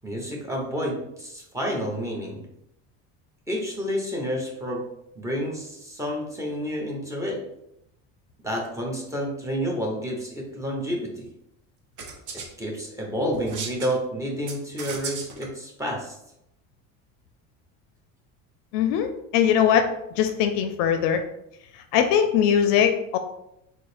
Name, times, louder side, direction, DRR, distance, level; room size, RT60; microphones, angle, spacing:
voice 1, 0.0-2.4 3.5-4.9 5.1-7.4 8.4-11.3 12.3-16.1, equal, 10° right, -1 dB, 0.8 m, -30 dB
sound 1, 12.0-12.5 13.3-13.9 14.5-15.5, right 5 dB, 55° right, 0.8 m, -35 dB
voice 2, 18.7-21.2 21.7-23.2, left 8 dB, 70° left, 7 dB, 0.5 m, -21 dB
3.9 x 2.0 x 3.2 m, 0.81 s
supercardioid pair, 120°, 36 cm